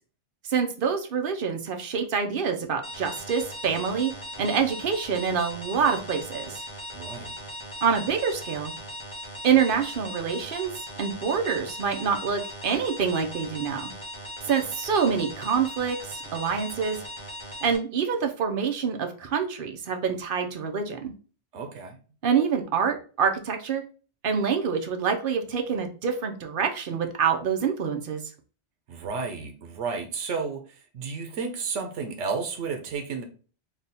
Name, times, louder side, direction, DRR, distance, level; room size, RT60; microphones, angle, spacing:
voice 1, 0.5-6.6 7.8-8.7 9.4-10.7 11.0-13.9 14.5-17.0 17.6-21.1 22.2-23.8 24.2-28.2, right 6 dB, 55° right, 4 dB, 0.8 m, -26 dB
sound 1, 2.8-17.8, equal, 25° left, 1.0 m, -39 dB
voice 2, 6.9-7.3 21.5-22.0 28.9-33.2, right 5 dB, 85° right, 5 dB, 1.0 m, -32 dB
3.5 x 2.3 x 4.0 m, 0.38 s
omnidirectional pair, 1.2 m